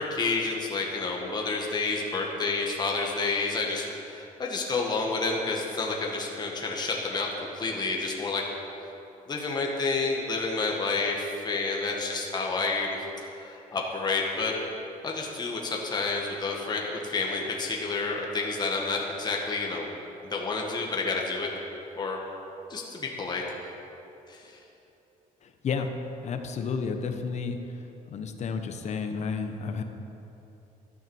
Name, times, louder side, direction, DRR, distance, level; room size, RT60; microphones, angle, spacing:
voice 1, 0.0-7.3 7.5-8.4 9.3-14.5 15.0-19.9 20.3-21.5 22.0-22.2 22.7-23.4 24.3-24.5, left 3 dB, 30° left, -1 dB, 1.6 m, -29 dB
voice 2, 25.4-25.9 26.2-27.6 28.1-29.8, left 5 dB, 50° left, 6 dB, 1.2 m, -31 dB
12.5 x 9.2 x 7.2 m, 3.0 s
cardioid pair, 130°, 15 cm